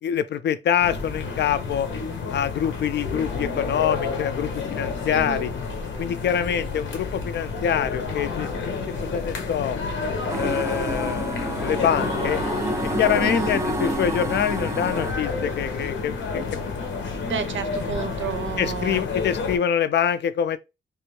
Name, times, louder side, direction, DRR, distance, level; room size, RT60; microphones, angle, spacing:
voice 1, 0.0-1.9 2.3-5.5 6.0-9.8 10.3-12.4 12.8-16.4 17.0-17.1 18.6-20.6, left 9 dB, 65° left, 0.4 m, -25 dB
sound 1, 0.8-19.6, left 4 dB, 85° left, 0.8 m, -30 dB
voice 2, 5.1-5.5 13.2-13.6 17.3-19.0, right 6 dB, 85° right, 0.6 m, -30 dB
sound 2, 10.3-15.1, right 1 dB, 15° right, 0.4 m, -29 dB
3.3 x 2.5 x 3.1 m
wide cardioid pair, 125°, 19 cm